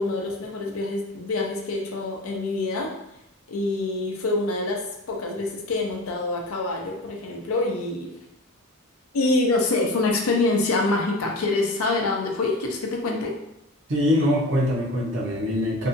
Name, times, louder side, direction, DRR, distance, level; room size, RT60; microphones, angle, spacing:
voice 1, 0.0-2.9 3.5-8.1 9.1-13.3, left 2 dB, 85° left, 1 dB, 0.5 m, -25 dB
voice 2, 13.9-15.9, left 1 dB, 55° right, -4 dB, 0.6 m, -23 dB
2.7 x 2.4 x 2.5 m, 0.83 s
head